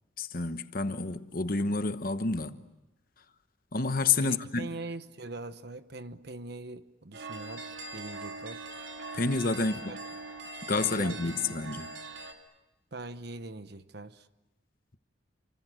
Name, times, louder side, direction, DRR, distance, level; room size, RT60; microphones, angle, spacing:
voice 1, 0.2-2.6 3.7-4.7 9.1-9.7 10.6-11.9, left 3 dB, 45° left, 1.1 m, -29 dB
voice 2, 4.2-8.7 9.6-10.0 10.8-11.7 12.9-14.3, right 2 dB, 55° right, 1.1 m, -42 dB
sound 1, 7.1-12.3, right 3 dB, 75° right, 3.3 m, -42 dB
29.5 x 25.5 x 7.8 m
head